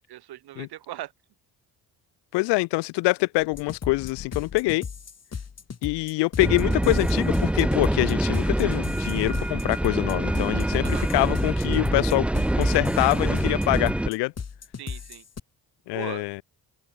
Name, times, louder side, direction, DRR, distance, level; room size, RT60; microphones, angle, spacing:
voice 1, 0.1-1.1 10.8-11.1 14.8-15.2 15.9-16.2, right 14 dB, 70° right, 1.1 m, -38 dB
voice 2, 2.3-4.8 5.8-12.3 12.6-14.3 15.9-16.4, left 23 dB, 85° left, 0.6 m, -25 dB
sound 1, 3.3-4.9 6.4-8.3, left 10 dB, 55° left, 1.8 m, -44 dB
sound 2, 3.5-15.4, left 6 dB, 40° left, 2.5 m, -37 dB
sound 3, 6.4-14.1, right 1 dB, 5° right, 0.4 m, -25 dB
open air
supercardioid pair, 65°, 40 cm